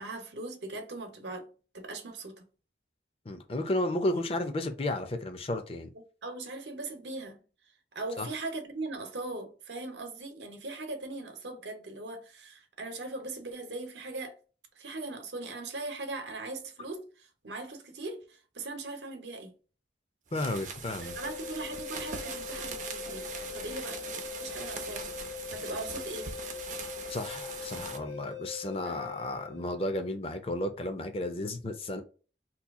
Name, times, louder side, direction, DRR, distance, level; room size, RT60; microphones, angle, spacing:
voice 1, 0.0-1.5 1.7-2.4 6.2-7.4 7.9-14.4 14.8-19.5 21.2-23.3 23.5-25.1 25.5-26.3 28.8-29.1, right 2 dB, 80° right, 0.9 m, -40 dB
voice 2, 3.3-5.9 8.2-8.3 20.3-21.1 27.1-32.0, left 1 dB, 30° left, 0.5 m, -33 dB
sound 1, 20.3-28.0, right 5 dB, 45° right, 0.5 m, -41 dB
sound 2, 21.0-30.0, left 8 dB, 85° left, 1.4 m, -42 dB
2.8 x 2.3 x 3.5 m
head